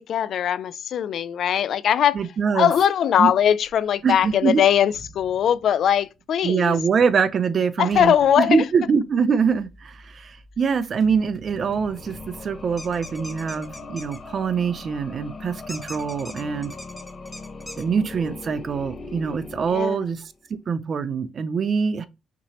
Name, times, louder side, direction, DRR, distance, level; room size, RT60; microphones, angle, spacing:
voice 1, 0.1-2.2 2.5-6.8 7.8-8.6 19.7-20.0, left 9 dB, 65° left, 0.3 m, -20 dB
voice 2, 2.1-2.7 3.2-3.3 4.0-4.6 6.4-16.7 17.8-20.2 20.5-22.1, right 6 dB, 50° right, 0.5 m, -24 dB
sound 1, 3.6-6.4 7.1-14.2, right 1 dB, 25° right, 2.1 m, -50 dB
sound 2, 11.3-20.4, left 3 dB, 40° left, 0.8 m, -40 dB
sound 3, 12.8-14.2 15.7-17.8, left 1 dB, 5° left, 0.8 m, -40 dB
5.9 x 2.9 x 2.9 m
cardioid pair, 90°, 0 cm